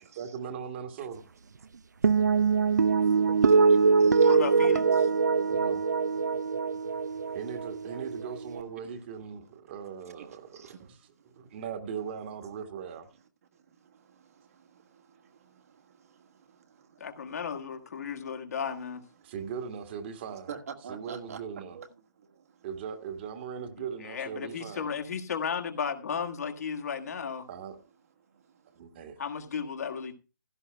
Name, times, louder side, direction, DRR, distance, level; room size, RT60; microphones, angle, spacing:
voice 1, 0.1-1.2 5.5-5.9 7.3-11.0 11.4-13.1 19.2-20.5 20.9-21.8 22.6-24.9 27.5-27.8 28.7-29.2, right 7 dB, 35° right, 1.6 m, -39 dB
voice 2, 2.0-4.4 5.1-5.6 6.2-6.4 6.8-7.4 10.2-11.6 13.5-17.1 18.0-18.4 19.2-19.3 20.5-21.9 22.2-22.7 28.3-28.8, right 6 dB, 50° right, 1.6 m, -50 dB
sound 1, 2.0-8.6, right 5 dB, 70° right, 0.6 m, -23 dB
voice 3, 4.2-5.1 17.0-19.0 24.0-27.5 29.2-30.1, left 6 dB, 55° left, 1.7 m, -34 dB
15.5 x 12.5 x 2.2 m
figure-of-eight pair, 135°, 10 cm